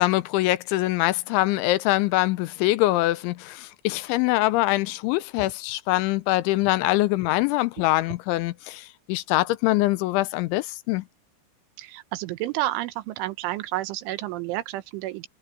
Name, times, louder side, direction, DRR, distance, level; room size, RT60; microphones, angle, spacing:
voice 1, 0.0-11.0, left 18 dB, 85° left, 3.2 m, -23 dB
voice 2, 11.8-15.3, right 16 dB, 90° right, 3.6 m, -30 dB
omnidirectional pair, 5.3 m